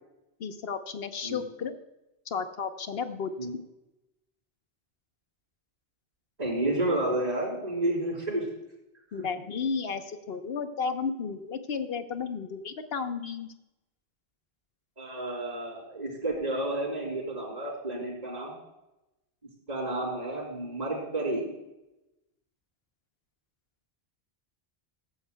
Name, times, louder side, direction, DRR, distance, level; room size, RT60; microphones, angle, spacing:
voice 1, 0.4-1.7 2.3-3.3 9.1-13.5, left 5 dB, 70° left, 8 dB, 1.2 m, -33 dB
voice 2, 6.4-8.5 15.0-18.5 19.7-21.5, right 1 dB, 35° right, -8 dB, 4.0 m, -31 dB
15.5 x 12.5 x 2.3 m, 0.95 s
omnidirectional pair, 1.1 m